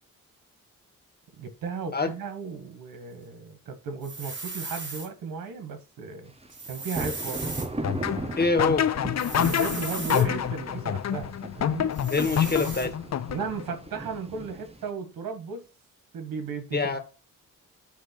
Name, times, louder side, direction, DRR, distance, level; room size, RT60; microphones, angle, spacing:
voice 1, 1.4-6.3 6.7-7.7 9.4-11.9 13.3-15.7 16.1-16.8, right 5 dB, 90° right, 1.9 m, -35 dB
sound 1, 4.0-5.1 6.5-7.7 9.2-10.3 11.9-12.9, right 3 dB, 35° right, 2.7 m, -37 dB
sound 2, 6.4-14.9, right 2 dB, 20° right, 1.1 m, -38 dB
sound 3, 7.8-13.7, left 9 dB, 50° left, 0.6 m, -27 dB
voice 2, 8.4-8.9 12.1-12.9 16.7-17.0, left 3 dB, 30° left, 1.9 m, -25 dB
9.4 x 3.3 x 6.1 m
cardioid pair, 85°, 33 cm